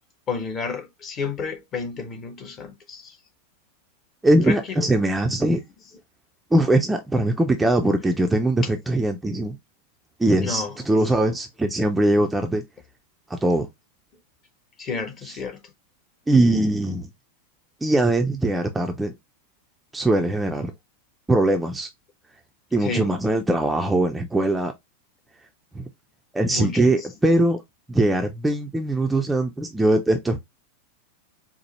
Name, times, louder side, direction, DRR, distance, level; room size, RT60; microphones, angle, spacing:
voice 1, 0.3-3.2 4.4-5.1 5.4-5.6 10.4-10.8 14.8-15.6 22.8-23.1 26.5-27.1, left 4 dB, 30° left, 0.8 m, -31 dB
voice 2, 4.2-5.6 6.5-9.6 10.2-12.6 13.3-13.7 16.3-17.1 17.8-19.1 19.9-20.7 21.3-21.9 22.7-24.7 25.7-25.9 26.3-27.6 27.9-30.4, right 1 dB, 10° right, 0.5 m, -21 dB
4.6 x 2.0 x 3.0 m
figure-of-eight pair, 90°, 0 cm